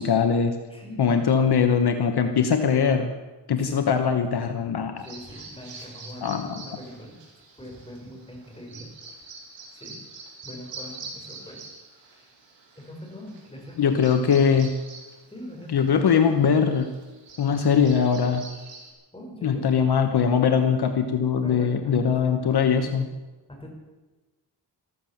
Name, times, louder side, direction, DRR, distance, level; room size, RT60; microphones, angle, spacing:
voice 1, 0.0-0.5 1.0-3.1 3.5-5.0 6.2-6.6 13.8-14.7 15.7-16.9 17.4-18.4 19.4-23.1, left 6 dB, 65° left, 7 dB, 1.2 m, -21 dB
voice 2, 0.7-1.4 3.7-4.1 5.0-7.2 7.5-8.9 9.2-9.3 9.7-10.0 10.4-11.7 12.0-12.3 12.7-14.0 15.3-15.9 19.1-19.7 21.4-22.1 22.4-23.1 23.5-23.7, equal, 15° left, 0 dB, 5.0 m, -42 dB
Bird vocalization bird call bird song, 5.0-18.9, right 3 dB, 80° right, 4.7 m, -45 dB
14.0 x 14.0 x 7.3 m, 1.2 s
wide cardioid pair, 105°, 42 cm